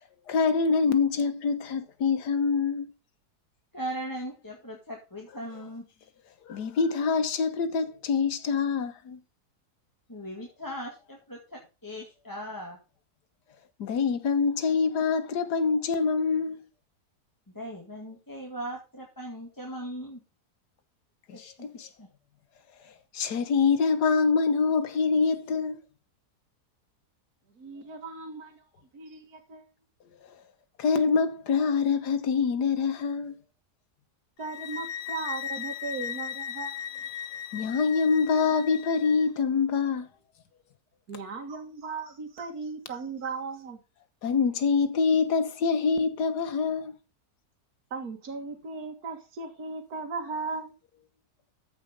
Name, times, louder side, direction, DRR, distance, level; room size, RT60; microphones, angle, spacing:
voice 1, 0.3-2.9 6.5-9.2 13.8-16.6 21.3-21.9 23.1-25.8 30.8-33.4 37.5-40.1 44.2-46.9, left 5 dB, 85° left, 1.8 m, -25 dB
voice 2, 3.7-5.8 10.1-12.8 17.5-20.2 21.3-22.1, equal, 10° left, 2.0 m, -39 dB
voice 3, 27.6-28.7 28.9-29.7 34.4-37.2 41.1-43.8 47.9-50.7, right 4 dB, 65° right, 2.3 m, -37 dB
sound 1, 34.4-39.3, left 9 dB, 60° left, 1.1 m, -37 dB
14.0 x 5.2 x 5.1 m
omnidirectional pair, 1.7 m